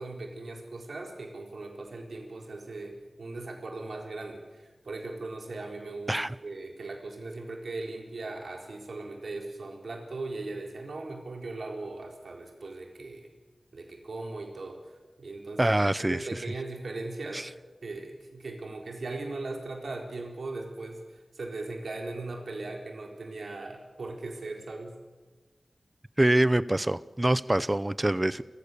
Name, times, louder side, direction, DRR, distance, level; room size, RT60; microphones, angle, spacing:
voice 1, 0.0-13.3 13.7-14.8 15.2-15.8 16.1-17.5 17.8-21.1 21.3-25.0, right 2 dB, 80° right, 4.1 m, -39 dB
voice 2, 15.6-16.4 17.3-17.5 26.2-28.4, right 1 dB, 20° right, 0.7 m, -25 dB
29.0 x 15.5 x 6.9 m
wide cardioid pair, 65°, 0 cm